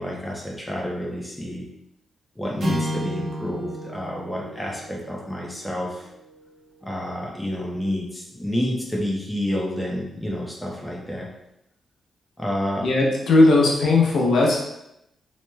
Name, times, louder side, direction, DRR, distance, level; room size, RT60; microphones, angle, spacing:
voice 1, 0.0-1.7 2.4-6.1 6.8-11.3 12.4-12.9, left 1 dB, 5° left, -3 dB, 0.5 m, -29 dB
sound 1, 2.6-7.1, equal, 60° right, 1.2 m, -33 dB
voice 2, 12.8-14.6, left 2 dB, 75° left, -3 dB, 0.7 m, -17 dB
3.0 x 2.0 x 3.3 m, 0.84 s
wide cardioid pair, 150°, 0 cm